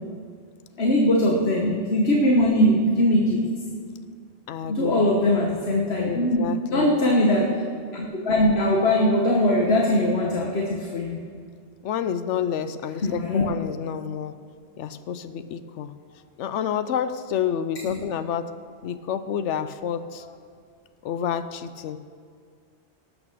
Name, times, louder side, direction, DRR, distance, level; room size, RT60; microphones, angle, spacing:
voice 1, 0.8-3.5 4.7-6.4 6.7-7.6 7.9-11.2 13.0-13.5 17.8-18.0, left 1 dB, 65° left, 0 dB, 1.5 m, -21 dB
voice 2, 4.5-5.0 6.0-6.9 11.8-14.3 14.8-15.9 16.4-18.5 18.8-20.2 21.0-22.0, left 8 dB, 90° left, 12 dB, 0.9 m, -29 dB
18.5 x 6.2 x 6.6 m, 2.1 s
omnidirectional pair, 1.2 m